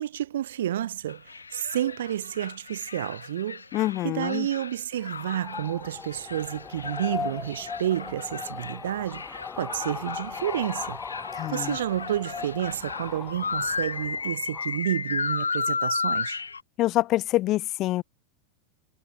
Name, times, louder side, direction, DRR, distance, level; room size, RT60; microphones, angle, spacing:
voice 1, 0.0-3.6 4.0-11.0 11.5-16.4, right 11 dB, 60° right, 0.7 m, -30 dB
sound 1, 1.1-16.6, left 5 dB, 75° left, 4.0 m, -34 dB
voice 2, 3.7-4.5 11.3-11.8 16.8-18.0, left 16 dB, 35° left, 1.0 m, -26 dB
sound 2, 5.0-14.8, left 5 dB, 15° left, 1.6 m, -38 dB
figure-of-eight pair, 90°, 0 cm